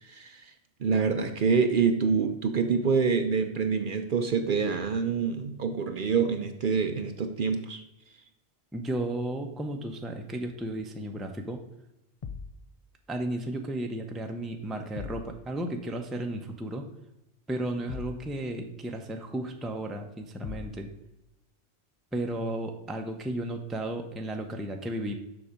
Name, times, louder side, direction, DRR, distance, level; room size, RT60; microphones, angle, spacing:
voice 1, 0.0-0.5 0.8-7.8, right 5 dB, 55° right, 7 dB, 0.7 m, -26 dB
voice 2, 8.7-11.6 13.1-16.8 17.5-20.9 22.1-25.1, right 1 dB, ahead, 3 dB, 0.6 m, -34 dB
sound 1, 12.2-12.6 15.0-15.3 17.9-18.3 20.4-20.8, left 5 dB, 40° left, 0.6 m, -39 dB
7.0 x 5.8 x 5.1 m, 0.90 s
omnidirectional pair, 1.1 m